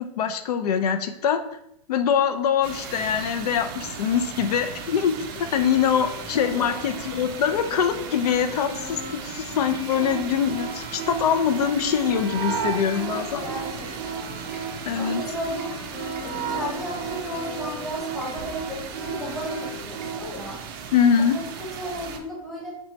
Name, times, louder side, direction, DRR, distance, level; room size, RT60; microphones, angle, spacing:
voice 1, 0.2-1.4 1.9-13.4 14.9-15.2 20.9-21.4, left 7 dB, 85° left, 7 dB, 0.5 m, -23 dB
sound 1, 2.6-22.2, right 6 dB, 40° right, 0.4 m, -37 dB
sound 2, 5.3-20.2, left 4 dB, 45° left, 0.9 m, -42 dB
voice 2, 6.3-7.1 13.4-14.5 14.9-15.7 16.2-20.6 21.3-22.8, equal, ahead, -5 dB, 0.8 m, -34 dB
sound 3, 9.9-20.2, right 6 dB, 90° right, 0.6 m, -34 dB
4.3 x 2.2 x 4.0 m, 0.75 s
supercardioid pair, 165°, 19 cm